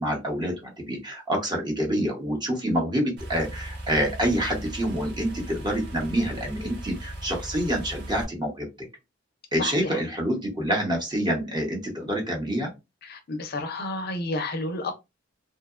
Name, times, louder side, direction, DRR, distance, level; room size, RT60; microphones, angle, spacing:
voice 1, 0.0-8.7 9.5-12.7, equal, 25° right, 0.9 m, -27 dB
sound 1, 3.2-8.2, right 1 dB, 55° right, 0.9 m, -37 dB
voice 2, 9.6-10.0 13.0-14.9, left 2 dB, 55° left, 0.5 m, -31 dB
2.8 x 2.1 x 2.3 m
head